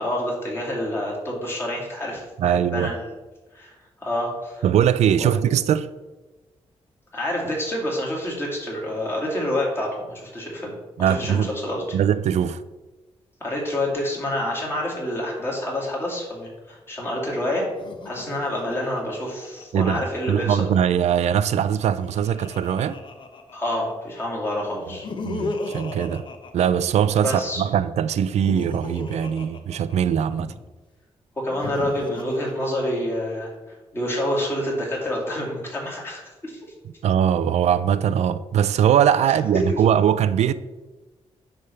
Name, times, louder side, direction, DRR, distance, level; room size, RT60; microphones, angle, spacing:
voice 1, 0.0-3.1 3.5-4.6 5.2-5.3 7.1-12.0 13.4-17.7 18.0-20.7 23.5-25.1 27.2-27.6 31.4-36.7 39.3-39.8, left 1 dB, 20° left, 2.5 m, -28 dB
voice 2, 2.4-2.9 4.6-5.9 11.0-11.5 11.9-12.6 19.7-23.0 25.2-26.2 26.5-30.5 37.0-40.5, right 9 dB, 85° right, 0.4 m, -21 dB
Laughter, 17.7-20.2 21.5-23.9 24.8-27.3 28.1-30.6 31.4-33.4, left 3 dB, 45° left, 0.9 m, -36 dB
9.8 x 3.5 x 6.8 m
wide cardioid pair, 165°, 11 cm